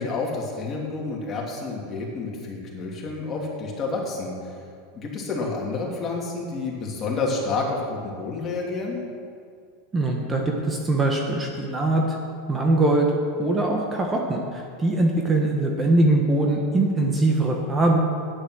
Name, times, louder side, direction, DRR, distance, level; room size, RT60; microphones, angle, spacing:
voice 1, 0.0-4.5 4.9-9.0, left 3 dB, 30° left, -2 dB, 2.9 m, -29 dB
voice 2, 9.9-12.0 12.5-13.1 13.4-18.0, right 2 dB, 20° right, 1 dB, 1.3 m, -22 dB
10.5 x 9.6 x 6.4 m, 2.2 s
supercardioid pair, 130°, 0 cm